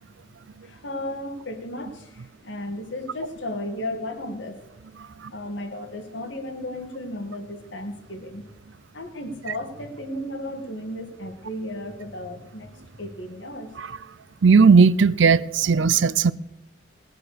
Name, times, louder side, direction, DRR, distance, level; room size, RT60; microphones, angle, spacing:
voice 1, 0.6-4.6 5.3-8.4 8.9-13.7, left 1 dB, 80° left, 2.1 m, -34 dB
voice 2, 14.4-16.3, right 5 dB, 80° right, 0.5 m, -16 dB
18.5 x 7.9 x 6.7 m
head